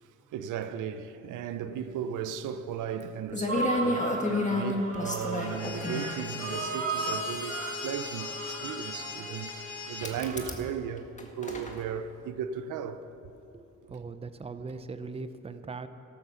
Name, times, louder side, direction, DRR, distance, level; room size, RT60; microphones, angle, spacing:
voice 1, 0.3-11.1 11.4-13.0 13.8-13.9, right 8 dB, 85° right, 0.8 m, -36 dB
sound 1, 3.0-3.1 3.3-6.1 7.1-7.2 10.0-10.7 11.0-11.8, left 2 dB, 25° left, 1.8 m, -31 dB
sound 2, 3.5-10.5, right 4 dB, 50° right, 1.8 m, -36 dB
sound 3, 5.4-10.1, left 5 dB, 75° left, 2.6 m, -39 dB
voice 2, 13.5-15.9, right 4 dB, 20° right, 0.7 m, -40 dB
14.0 x 13.5 x 5.7 m
cardioid pair, 90°, 30 cm